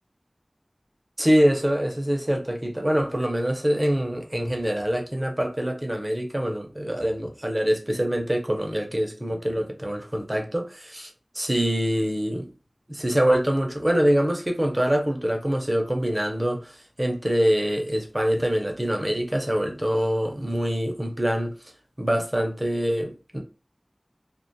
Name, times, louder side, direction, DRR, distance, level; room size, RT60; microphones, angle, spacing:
voice 1, 1.2-12.5 12.9-21.5 22.0-23.4, equal, 25° right, 0.6 m, -24 dB
2.4 x 2.2 x 2.7 m
wide cardioid pair, 45°, 0 cm